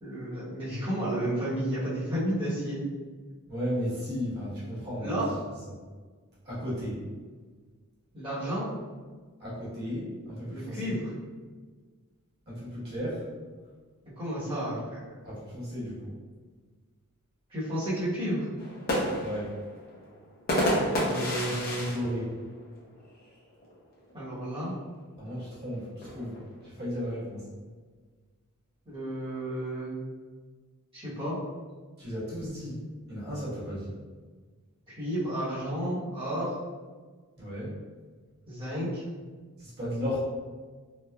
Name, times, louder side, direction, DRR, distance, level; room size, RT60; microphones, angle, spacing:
voice 1, 0.0-2.8 5.0-5.3 8.1-8.7 10.5-11.0 14.2-15.0 17.5-18.5 21.0-21.9 24.1-24.7 28.9-29.9 30.9-31.4 34.9-36.6 38.5-39.0, right 1 dB, 25° right, -10 dB, 1.0 m, -32 dB
voice 2, 3.5-5.2 5.7-5.8 6.4-7.0 9.4-11.0 12.5-13.2 15.2-16.1 19.2-19.5 21.4-22.3 25.2-27.4 32.0-32.8 33.1-33.9 37.4-37.7 39.6-40.2, equal, 50° right, -9 dB, 1.3 m, -34 dB
sound 1, 18.6-23.2 23.6-23.7 24.0-24.5 25.3-26.9, equal, 45° left, 0.6 m, -31 dB
3.1 x 2.0 x 2.3 m, 1.5 s
head